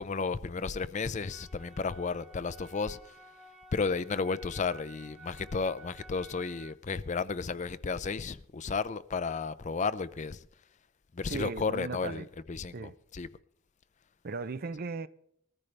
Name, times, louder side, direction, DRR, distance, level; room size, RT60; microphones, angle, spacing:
voice 1, 0.0-3.0 3.7-10.4 11.1-13.3, left 4 dB, 35° left, 0.5 m, -33 dB
sound 1, 1.2-6.7, right 3 dB, 5° right, 1.1 m, -54 dB
voice 2, 11.2-12.3 12.7-12.9 14.2-15.1, right 4 dB, 45° right, 0.5 m, -37 dB
20.5 x 14.5 x 3.3 m
head